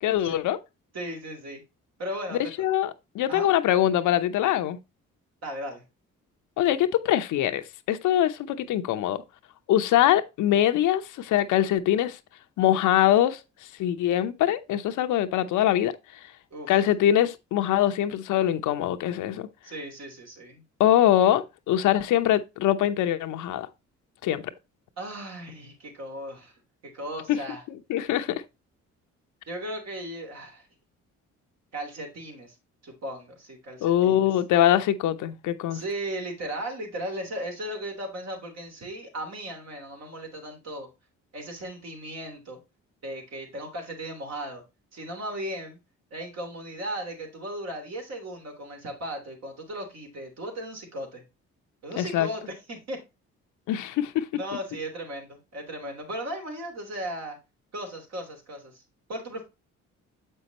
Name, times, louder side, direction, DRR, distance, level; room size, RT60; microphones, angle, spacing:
voice 1, 0.0-0.6 2.6-4.8 6.6-7.6 7.9-9.2 9.7-12.2 12.6-13.4 13.8-15.9 16.7-19.5 20.8-23.7 24.2-24.4 27.3-27.4 27.9-28.3 33.8-35.8 52.0-52.3 53.7-54.3, left 12 dB, 85° left, 0.8 m, -23 dB
voice 2, 0.9-1.6 2.0-2.4 3.3-3.5 5.4-5.8 16.5-16.8 19.6-20.6 25.0-26.5 26.9-27.6 29.5-30.7 31.7-32.5 32.8-34.3 35.7-40.9 41.3-42.6 43.0-44.6 44.9-45.8 46.1-51.2 51.8-53.0 54.4-57.4 57.7-58.8 59.1-59.4, right 1 dB, 60° right, 3.0 m, -36 dB
7.6 x 5.5 x 2.9 m
cardioid pair, 90°, 30 cm